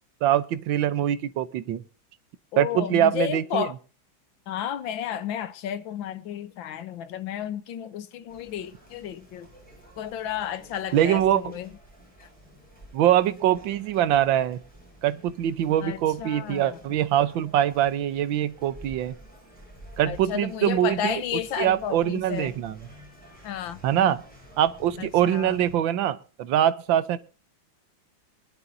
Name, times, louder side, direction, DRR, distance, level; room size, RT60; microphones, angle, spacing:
voice 1, 0.2-1.8 2.6-3.6 10.9-11.5 12.9-14.6 15.0-19.1 20.0-21.2 21.6-22.7 23.8-24.2 24.6-27.2, right 11 dB, 75° right, 1.6 m, -23 dB
voice 2, 2.5-3.7 4.5-9.5 10.0-11.7 12.2-12.3 15.8-16.8 20.1-22.5 23.4-23.8 25.0-25.6, left 9 dB, 75° left, 1.7 m, -32 dB
sound 1, 8.3-25.8, equal, 5° left, 6.8 m, -50 dB
23.0 x 11.0 x 2.7 m
omnidirectional pair, 2.2 m